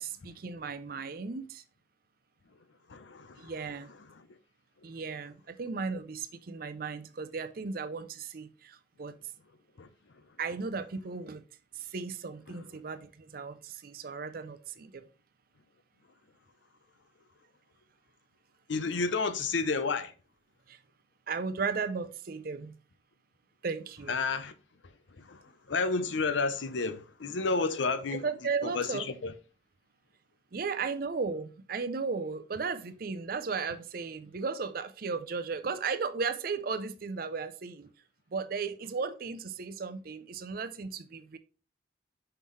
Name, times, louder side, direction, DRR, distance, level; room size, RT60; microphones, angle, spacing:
voice 1, 0.0-1.6 3.4-3.9 4.8-9.2 10.4-11.4 11.7-15.1 20.7-20.8 21.3-22.7 23.6-24.1 28.2-29.1 30.5-37.9 38.3-41.4, right 5 dB, 50° right, 0.5 m, -35 dB
voice 2, 2.9-3.5 4.0-4.3 9.8-9.9 10.2-10.3 12.5-12.6 18.7-20.1 24.1-24.5 24.8-28.2 28.6-29.3, left 4 dB, 85° left, 0.6 m, -31 dB
5.8 x 5.4 x 3.1 m
head